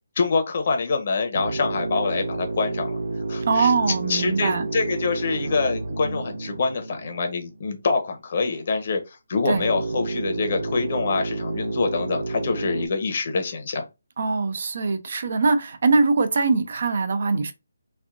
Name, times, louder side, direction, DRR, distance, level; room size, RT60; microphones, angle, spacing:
voice 1, 0.2-3.0 3.3-3.7 4.1-13.8, left 4 dB, 50° left, 0.8 m, -25 dB
sound 1, 1.3-7.7 9.5-12.9, right 2 dB, 90° right, 1.1 m, -30 dB
voice 2, 3.5-4.7 9.5-9.6 14.2-17.5, right 4 dB, 55° right, 0.5 m, -22 dB
3.3 x 2.4 x 2.4 m
figure-of-eight pair, 155°, 0 cm